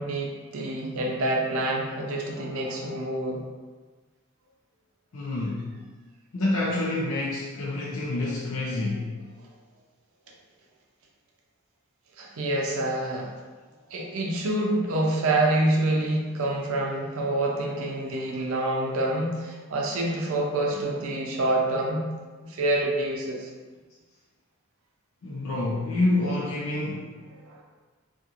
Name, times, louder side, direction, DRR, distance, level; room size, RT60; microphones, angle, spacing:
voice 1, 0.0-3.4 12.2-13.3 13.9-22.1 22.4-23.5 27.4-27.6, right 1 dB, 85° right, -1 dB, 0.5 m, -27 dB
voice 2, 5.1-5.7 6.3-9.1 25.2-27.2, left 2 dB, 80° left, -5 dB, 0.5 m, -27 dB
2.5 x 2.4 x 2.7 m, 1.3 s
head